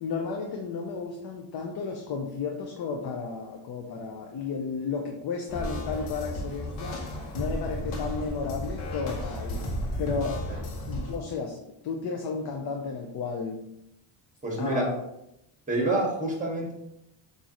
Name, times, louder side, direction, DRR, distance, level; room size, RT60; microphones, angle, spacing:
voice 1, 0.0-9.7 10.0-10.5 10.9-13.7 14.6-15.0, left 5 dB, 50° left, 1 dB, 0.7 m, -33 dB
sound 1, 5.5-11.2, left 1 dB, 80° left, 1.2 m, -34 dB
voice 2, 14.4-14.9 15.7-16.7, right 2 dB, 15° right, -1 dB, 1.7 m, -27 dB
6.1 x 2.7 x 3.0 m, 0.83 s
cardioid pair, 105°, 48 cm